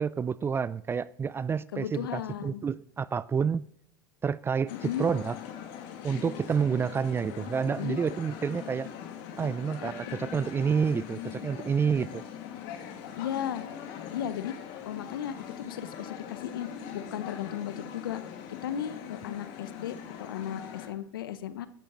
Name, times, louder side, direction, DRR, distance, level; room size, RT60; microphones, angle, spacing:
voice 1, 0.0-3.6 4.2-5.3 6.0-8.9 9.4-12.2, right 6 dB, 20° right, 0.4 m, -29 dB
voice 2, 1.7-2.6 4.8-5.1 7.8-8.0 9.4-9.5 9.8-10.2 13.2-13.7 14.1-14.5 14.9-16.7 16.9-18.2 18.6-21.7, left 10 dB, 80° left, 0.8 m, -35 dB
sound 1, 4.7-20.9, left 8 dB, 60° left, 2.2 m, -41 dB
15.5 x 11.5 x 3.1 m
hypercardioid pair, 90°, 11 cm